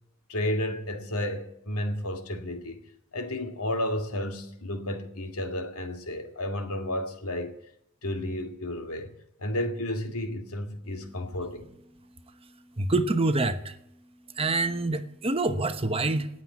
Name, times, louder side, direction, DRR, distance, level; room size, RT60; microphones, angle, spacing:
voice 1, 0.3-2.8 3.1-7.5 8.0-9.1 9.4-11.7, left 1 dB, 85° left, 2.1 m, -32 dB
voice 2, 12.8-13.8 14.4-16.3, right 2 dB, 25° right, 1.0 m, -26 dB
18.5 x 7.7 x 9.7 m
head